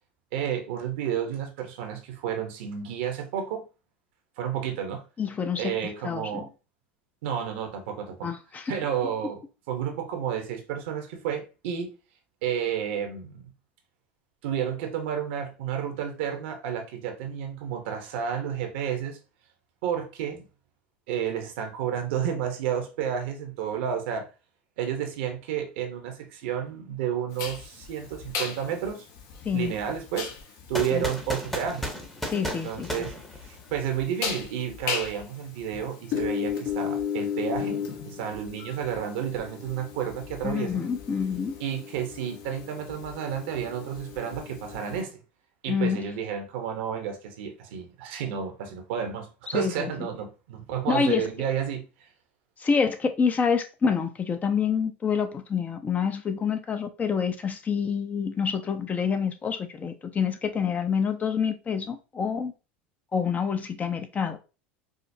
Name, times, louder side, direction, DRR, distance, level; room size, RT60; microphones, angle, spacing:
voice 1, 0.3-3.6 4.4-5.0 5.6-6.5 7.2-8.3 8.7-9.4 9.7-11.9 12.4-13.5 14.4-19.2 19.8-20.5 21.1-24.3 24.8-29.1 29.5-30.3 30.7-31.9 32.4-33.1 33.4-40.8 41.6-45.2 45.6-51.8, right 8 dB, 70° right, 0.9 m, -31 dB
voice 2, 5.2-5.8 6.0-6.3 8.2-8.7 29.4-29.7 30.9-31.0 32.3-32.9 40.4-41.6 45.7-46.1 49.5-50.1 50.9-51.3 52.6-62.5 63.1-64.4, left 6 dB, 25° left, 0.6 m, -27 dB
sound 1, 27.4-45.0, left 7 dB, 55° left, 1.0 m, -35 dB
sound 2, 30.7-33.9, left 1 dB, 5° left, 0.9 m, -34 dB
4.9 x 2.0 x 2.7 m
hypercardioid pair, 95°, 6 cm